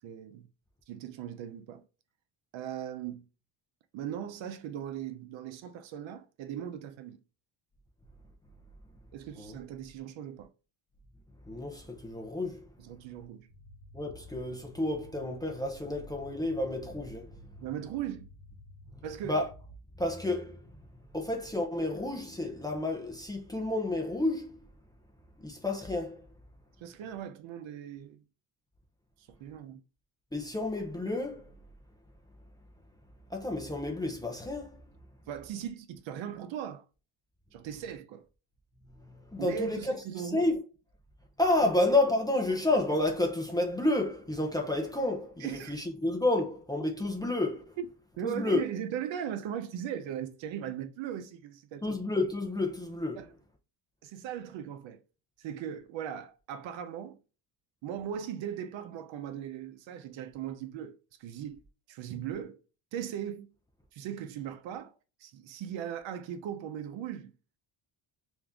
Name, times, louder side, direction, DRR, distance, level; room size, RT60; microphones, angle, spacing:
voice 1, 0.0-0.5 0.9-1.8 2.5-3.3 3.9-7.2 9.1-10.5 12.8-13.5 17.6-18.3 19.0-19.4 26.8-28.2 29.3-29.8 35.3-36.8 37.5-38.3 39.4-40.4 41.6-41.7 45.4-45.8 47.8-47.9 48.2-51.9 53.1-53.3 54.0-55.0 55.4-57.2 57.8-60.9 61.2-61.6 61.9-62.6 62.9-63.5 63.9-64.9 65.2-67.3, right 9 dB, 70° right, 0.7 m, -38 dB
voice 2, 11.5-12.7 13.9-17.4 19.2-19.5 20.0-20.8 21.1-24.6 25.4-26.3 30.3-31.5 33.3-34.8 39.0-40.6 41.4-47.8 48.2-48.6 51.8-53.3, left 2 dB, 10° left, 0.5 m, -30 dB
sound 1, 13.5-19.8, left 1 dB, 40° right, 1.8 m, -53 dB
3.5 x 2.7 x 3.5 m
cardioid pair, 175°, 47 cm